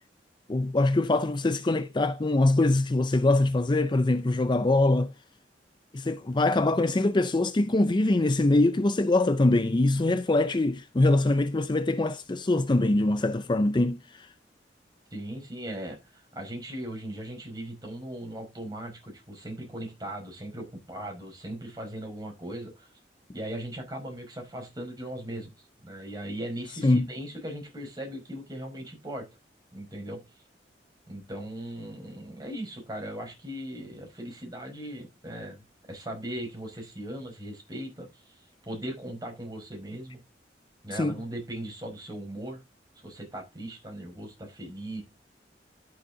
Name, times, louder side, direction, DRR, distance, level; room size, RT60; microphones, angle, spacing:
voice 1, 0.5-5.1 5.9-14.3 26.8-27.1 40.9-41.2, left 2 dB, 25° left, 0.5 m, -23 dB
voice 2, 15.1-22.9 23.3-25.5 25.8-29.3 29.7-30.2 31.1-35.6 35.9-38.3 38.6-40.2 40.8-42.6 43.0-45.0, right 1 dB, 25° right, 5.5 m, -38 dB
13.0 x 7.1 x 3.7 m
head